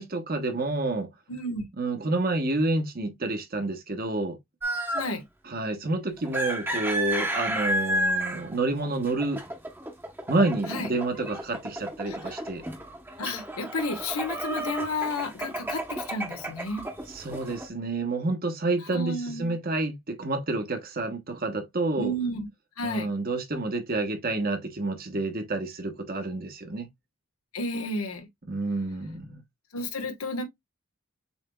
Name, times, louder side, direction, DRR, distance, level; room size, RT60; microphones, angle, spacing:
voice 1, 0.0-1.1 1.8-4.4 5.4-9.4 10.3-12.6 17.1-22.1 22.8-26.9 28.5-29.4, right 2 dB, 45° right, 1.1 m, -29 dB
voice 2, 1.3-1.6 4.9-5.2 10.7-10.9 12.1-12.2 13.2-16.8 18.9-19.5 22.0-22.5 22.8-23.1 27.5-28.3 29.7-30.4, left 1 dB, 90° left, 1.4 m, -31 dB
sound 1, 4.6-5.2 6.2-17.7, right 1 dB, 10° right, 1.0 m, -32 dB
7.0 x 3.2 x 2.3 m
head